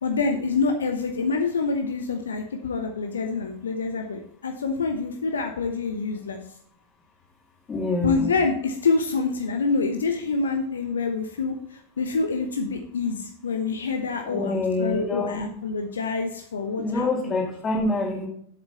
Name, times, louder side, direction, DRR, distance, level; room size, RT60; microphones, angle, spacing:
voice 1, 0.0-6.4 8.0-16.8, left 4 dB, 70° left, 5 dB, 1.0 m, -26 dB
voice 2, 7.7-8.3 14.2-15.5 16.8-18.3, left 2 dB, 20° left, 0 dB, 2.8 m, -26 dB
8.0 x 7.4 x 4.3 m, 0.64 s
figure-of-eight pair, 90°, 0 cm